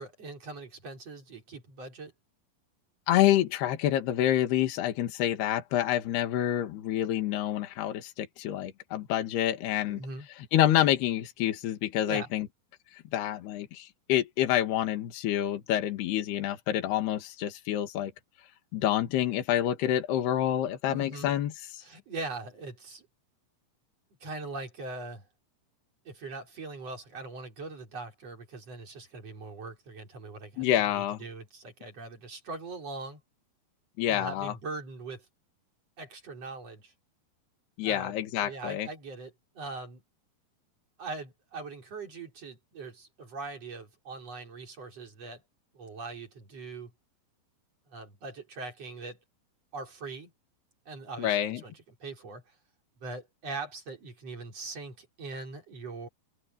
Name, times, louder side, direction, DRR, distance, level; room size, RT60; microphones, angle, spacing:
voice 1, 0.0-2.1 9.9-10.3 12.1-12.3 20.9-21.3 21.8-23.1 24.2-25.3 26.0-33.2 34.1-35.3 36.0-36.9 37.8-38.1 38.4-40.0 41.0-45.4 45.7-46.9 47.9-49.2 49.7-50.3 50.8-52.5 53.0-56.1, right 3 dB, 40° right, 4.9 m, -41 dB
voice 2, 3.1-10.0 10.5-12.5 12.9-18.1 18.7-21.8 30.6-31.2 34.0-34.5 37.8-38.9 51.2-51.6, left 12 dB, 75° left, 3.8 m, -27 dB
omnidirectional pair, 4.8 m